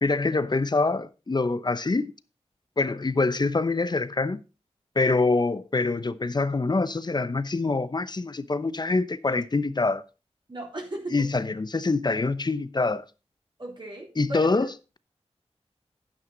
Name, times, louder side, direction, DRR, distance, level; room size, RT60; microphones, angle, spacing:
voice 1, 0.0-2.1 2.8-4.4 5.0-10.0 11.1-13.0 14.2-14.7, left 3 dB, 40° left, 0.8 m, -25 dB
voice 2, 10.5-11.2 13.6-14.7, right 1 dB, 45° right, 3.6 m, -36 dB
10.5 x 9.1 x 3.9 m
wide cardioid pair, 65°, 12 cm